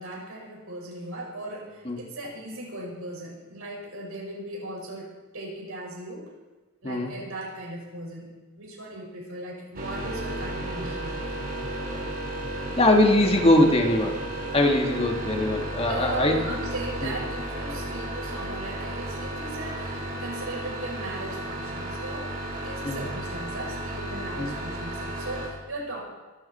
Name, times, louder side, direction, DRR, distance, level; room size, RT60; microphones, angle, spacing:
voice 1, 0.0-6.3 6.8-11.3 15.9-26.0, right 1 dB, 80° right, -1 dB, 5.4 m, -37 dB
sound 1, 9.7-25.5, right 1 dB, 45° right, 3.3 m, -33 dB
voice 2, 12.8-14.2 14.5-16.4 17.0-17.2 22.8-23.1 24.4-24.5, left 1 dB, 30° left, 3 dB, 1.8 m, -21 dB
23.5 x 12.0 x 4.3 m, 1.2 s
head